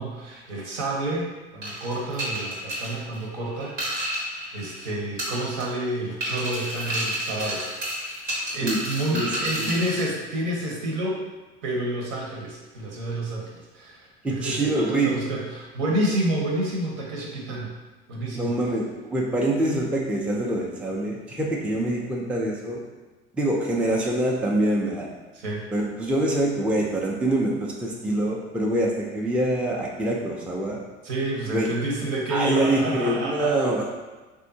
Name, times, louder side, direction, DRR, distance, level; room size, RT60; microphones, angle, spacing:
voice 1, 0.0-3.7 4.2-7.6 7.9-8.2 8.5-11.2 11.6-17.7 18.1-18.5 25.3-25.6 31.0-33.5, right 1 dB, 70° right, -2 dB, 1.1 m, -29 dB
sound 1, 1.6-4.9 5.2-5.9 6.2-10.1, right 1 dB, 90° right, 1.4 m, -31 dB
voice 2, 9.1-9.7 14.2-15.1 18.3-22.8 23.3-25.1 25.7-30.8 31.5-31.7 32.3-33.8, right 1 dB, 5° right, -2 dB, 0.4 m, -25 dB
3.4 x 2.6 x 2.7 m, 1.2 s
hypercardioid pair, 75°, 36 cm